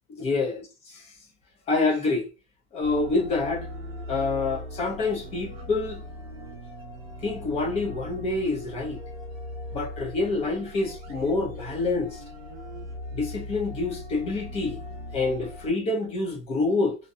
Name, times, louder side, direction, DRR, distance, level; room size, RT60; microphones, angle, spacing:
voice 1, 0.2-0.6 1.7-2.3 2.7-3.7 4.1-6.0 7.2-9.0 9.7-12.2 13.1-14.8 15.1-17.0, left 3 dB, 20° left, 0.6 m, -27 dB
sound 1, 2.8-15.7, left 1 dB, 20° right, 1.1 m, -39 dB
2.6 x 2.2 x 2.6 m
supercardioid pair, 155°, 32 cm